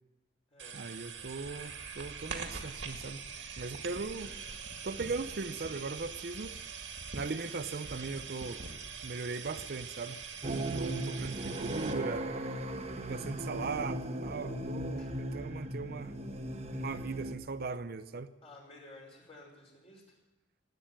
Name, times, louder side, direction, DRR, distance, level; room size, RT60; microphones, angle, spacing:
sound 1, 0.6-11.9, right 5 dB, 75° right, 2.0 m, -43 dB
voice 1, 0.7-3.2 3.6-4.3 4.8-6.6 7.1-8.6 9.0-12.3 13.0-16.2 16.7-18.3, right 4 dB, 55° right, 11 dB, 0.6 m, -39 dB
sound 2, 10.4-17.3, right 1 dB, 35° right, 1.2 m, -37 dB
voice 2, 18.4-20.0, left 2 dB, 35° left, -2 dB, 5.4 m, -54 dB
17.5 x 9.2 x 8.9 m, 1.1 s
head